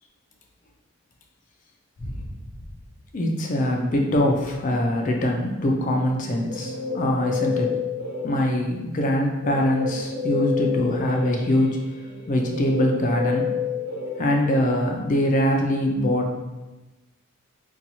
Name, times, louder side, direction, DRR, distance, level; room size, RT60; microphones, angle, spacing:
voice 1, 3.1-7.7 8.2-11.8 12.3-13.5 14.2-16.4, left 1 dB, 35° left, 1 dB, 0.3 m, -23 dB
Guitar, 6.1-8.7 9.4-14.8, left 6 dB, 75° right, 1.3 m, -30 dB
2.6 x 2.2 x 2.8 m, 1.1 s
head